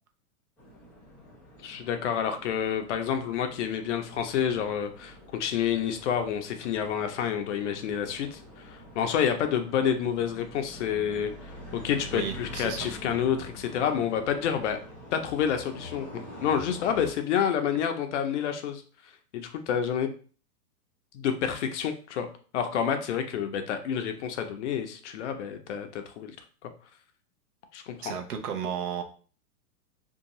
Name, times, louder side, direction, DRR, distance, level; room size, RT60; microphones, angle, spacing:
sound 1, 0.6-17.1, left 1 dB, 5° left, 0.7 m, -46 dB
voice 1, 1.6-14.8 15.1-16.1 16.4-18.8 19.3-20.1 21.1-22.3 22.5-26.3 27.7-28.1, left 8 dB, 50° left, 7 dB, 0.5 m, -29 dB
voice 2, 12.1-12.9 28.0-29.0, right 8 dB, 70° right, 5 dB, 0.8 m, -33 dB
2.6 x 2.3 x 2.9 m, 0.40 s
hypercardioid pair, 140°, 47 cm